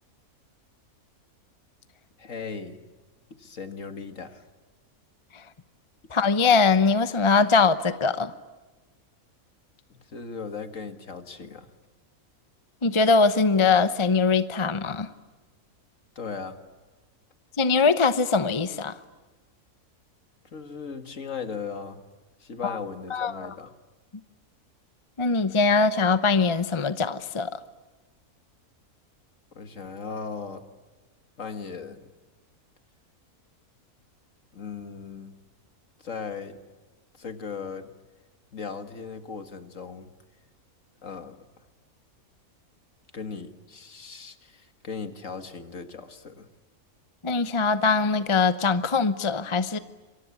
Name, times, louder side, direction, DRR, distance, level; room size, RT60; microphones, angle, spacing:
voice 1, 2.2-2.8 3.4-4.4 9.9-11.7 16.2-16.6 20.5-22.0 22.4-23.7 29.5-30.6 31.4-32.1 34.5-35.3 36.0-36.6 37.2-37.9 38.5-40.1 41.0-41.4 43.1-46.5, left 5 dB, 60° left, 8 dB, 2.2 m, -37 dB
voice 2, 6.1-8.3 12.8-15.1 17.6-18.9 22.6-22.8 23.1-23.5 25.2-27.6 47.2-49.8, left 4 dB, 25° left, 12 dB, 0.7 m, -22 dB
28.0 x 23.5 x 8.5 m, 1.3 s
omnidirectional pair, 1.6 m